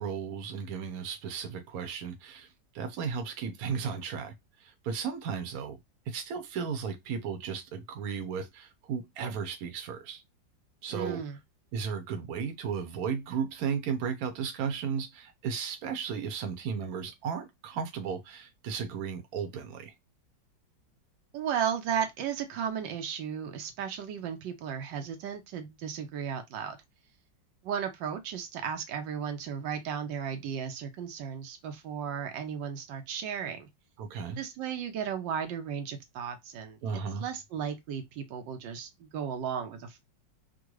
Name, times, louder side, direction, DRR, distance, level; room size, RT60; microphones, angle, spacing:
voice 1, 0.0-2.5 2.7-4.3 4.6-5.8 6.1-10.2 10.8-11.2 11.7-19.9 34.0-34.4 36.8-37.2, right 6 dB, 60° right, 1.1 m, -35 dB
voice 2, 10.9-11.4 21.3-26.8 27.6-33.7 34.4-36.8 37.2-40.0, right 8 dB, 85° right, 1.4 m, -35 dB
3.7 x 2.2 x 3.0 m
omnidirectional pair, 2.0 m